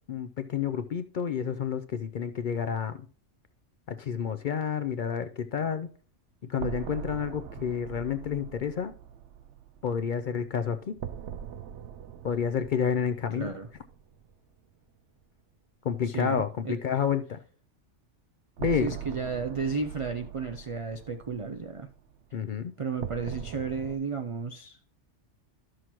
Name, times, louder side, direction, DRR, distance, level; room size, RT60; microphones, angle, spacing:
voice 1, 0.1-3.1 3.9-5.9 6.5-8.9 9.8-11.0 12.2-13.5 15.8-17.4 18.6-19.0 22.3-22.7, left 7 dB, 60° left, 0.5 m, -30 dB
sound 1, 6.6-14.3 14.6-14.7 18.6-24.0, right 9 dB, 75° right, 0.9 m, -42 dB
voice 2, 13.4-13.7 16.0-16.8 18.8-21.9 22.8-24.8, right 5 dB, 50° right, 0.4 m, -33 dB
12.5 x 6.3 x 3.0 m
omnidirectional pair, 1.2 m